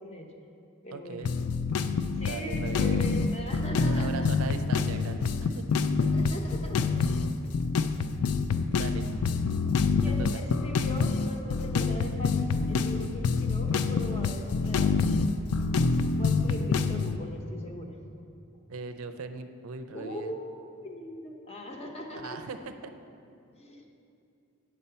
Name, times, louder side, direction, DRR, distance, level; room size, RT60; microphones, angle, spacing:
voice 1, 0.0-0.3 0.8-1.3 1.6-1.7 2.2-4.3 6.0-7.3 10.0-15.1 16.1-18.0 19.9-22.4 23.5-23.8, left 1 dB, 30° left, 2 dB, 0.8 m, -40 dB
voice 2, 0.9-1.4 2.2-3.1 3.9-5.6 8.8-9.1 10.2-10.3 18.7-20.3 22.2-22.9, right 4 dB, 70° right, 8 dB, 0.4 m, -39 dB
sound 1, 1.2-17.2, left 4 dB, 85° left, 0.4 m, -27 dB
8.7 x 4.2 x 6.8 m, 2.6 s
head